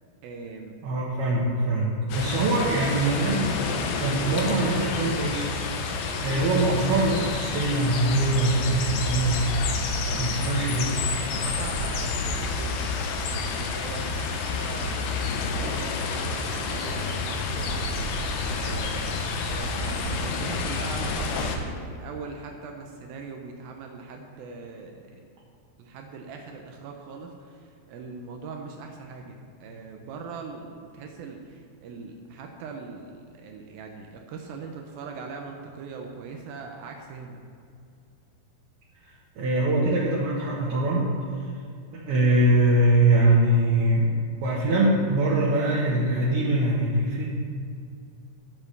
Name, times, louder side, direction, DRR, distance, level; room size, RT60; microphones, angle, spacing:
voice 1, 0.2-0.7 10.1-10.8 11.3-17.9 18.6-19.1 19.5-25.1 25.8-37.4, right 4 dB, 85° right, 2 dB, 2.0 m, -41 dB
voice 2, 0.8-3.5 4.0-5.5 6.2-9.5 10.2-10.9 39.4-41.5 41.9-44.2 44.4-47.3, right 2 dB, 70° right, -6 dB, 2.9 m, -23 dB
sound 1, 2.1-21.6, left 4 dB, 75° left, 2.5 m, -29 dB
19.0 x 7.0 x 3.3 m, 2.3 s
omnidirectional pair, 5.2 m